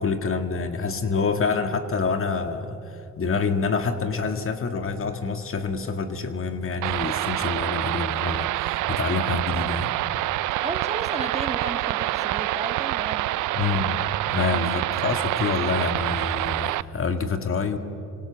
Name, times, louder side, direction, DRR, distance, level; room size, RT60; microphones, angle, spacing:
voice 1, 0.0-9.9 13.5-17.8, left 4 dB, 45° left, 8 dB, 2.0 m, -27 dB
sound 1, 6.8-16.8, right 16 dB, 80° right, 0.6 m, -26 dB
voice 2, 10.6-13.3 13.6-13.8 14.5-14.7, right 3 dB, 20° right, 7 dB, 1.9 m, -34 dB
29.5 x 25.5 x 7.1 m, 2.9 s
cardioid pair, 90°, 30 cm